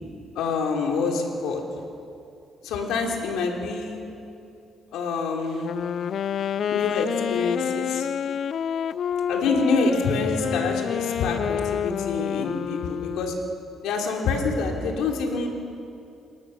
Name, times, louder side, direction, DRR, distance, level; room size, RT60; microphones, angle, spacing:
voice 1, 0.3-1.6 2.6-4.0 4.9-5.7 6.7-8.1 9.3-13.3 13.8-15.5, left 4 dB, 90° left, 1 dB, 3.0 m, -26 dB
Wind instrument woodwind instrument, 5.5-13.6, left 8 dB, 60° left, 0.4 m, -28 dB
28.5 x 14.0 x 6.5 m, 2.6 s
cardioid pair, 90°, 0 cm